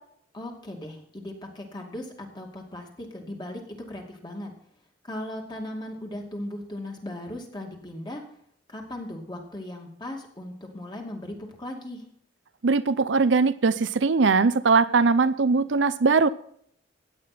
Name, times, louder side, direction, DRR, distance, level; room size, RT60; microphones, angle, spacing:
voice 1, 0.3-4.5 5.0-8.2 8.7-12.0, left 1 dB, 25° left, 1 dB, 2.6 m, -37 dB
voice 2, 12.6-16.3, right 4 dB, 75° right, 14 dB, 0.6 m, -21 dB
16.0 x 9.4 x 4.3 m, 0.66 s
head